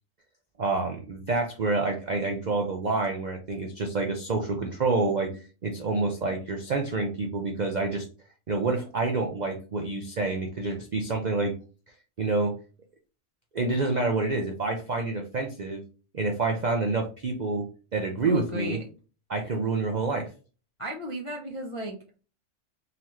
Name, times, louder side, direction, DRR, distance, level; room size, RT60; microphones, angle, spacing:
voice 1, 0.6-8.1 8.5-11.5 12.2-12.6 13.5-15.8 16.1-18.8 19.3-20.3, right 3 dB, 90° right, 3 dB, 0.3 m, -28 dB
voice 2, 18.2-18.9 20.8-22.0, left 1 dB, 60° left, -2 dB, 0.3 m, -33 dB
4.0 x 2.9 x 3.1 m, 0.36 s
omnidirectional pair, 1.6 m